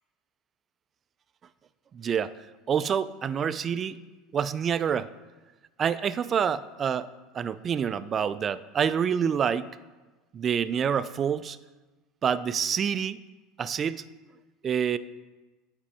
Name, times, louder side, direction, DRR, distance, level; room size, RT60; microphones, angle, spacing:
voice 1, 1.9-2.3 2.7-4.0 4.3-5.1 5.8-9.7 10.3-11.6 12.2-13.2 13.6-14.0 14.6-15.0, right 7 dB, 35° right, 16 dB, 0.3 m, -27 dB
8.6 x 5.0 x 3.5 m, 1.2 s
hypercardioid pair, 90°, 0 cm